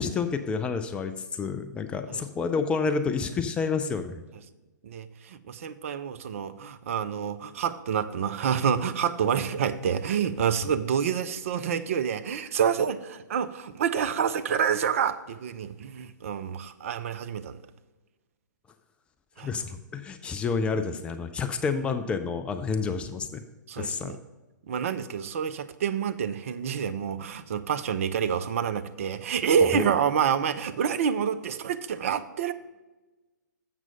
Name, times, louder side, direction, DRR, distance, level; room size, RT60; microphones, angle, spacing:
voice 1, 0.0-4.2 19.4-23.4 23.8-24.2 29.7-29.9, left 5 dB, 10° left, 8 dB, 0.3 m, -29 dB
voice 2, 4.8-17.6 19.4-19.5 23.7-24.2 24.7-32.5, right 7 dB, 45° right, 10 dB, 0.5 m, -28 dB
7.5 x 6.1 x 5.4 m, 1.1 s
figure-of-eight pair, 120°, 10 cm